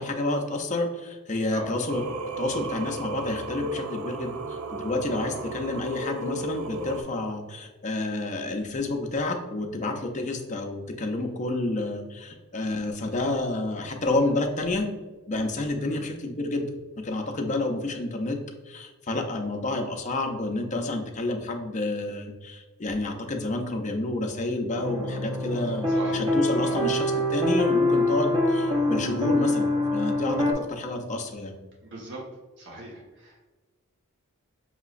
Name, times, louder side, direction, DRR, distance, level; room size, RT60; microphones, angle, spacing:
voice 1, 0.0-2.0 2.4-14.9 15.3-16.7 17.0-18.4 18.7-25.9 26.1-31.6, left 2 dB, 35° left, 3 dB, 0.5 m, -29 dB
Singing, 1.9-7.0, right 2 dB, 75° right, 0.4 m, -34 dB
voice 2, 5.1-5.5 15.8-16.1 25.9-26.2 26.5-26.8 31.8-32.2 32.6-33.4, right 2 dB, 55° right, -4 dB, 0.9 m, -39 dB
sound 1, 24.7-30.5, left 1 dB, 20° right, 0.7 m, -25 dB
5.6 x 2.9 x 2.4 m, 1.3 s
head